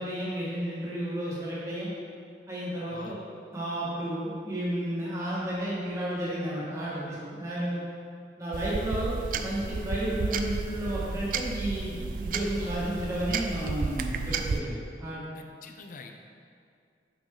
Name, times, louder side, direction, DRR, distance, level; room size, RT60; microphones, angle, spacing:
voice 1, 0.0-1.9 2.5-3.2 3.5-7.8 8.4-15.2, right 1 dB, 15° right, -8 dB, 1.7 m, -32 dB
sound 1, 8.5-14.6, right 4 dB, 50° right, 0.3 m, -32 dB
voice 2, 15.3-16.1, left 4 dB, 45° left, 4 dB, 0.5 m, -46 dB
6.3 x 6.2 x 3.8 m, 2.3 s
head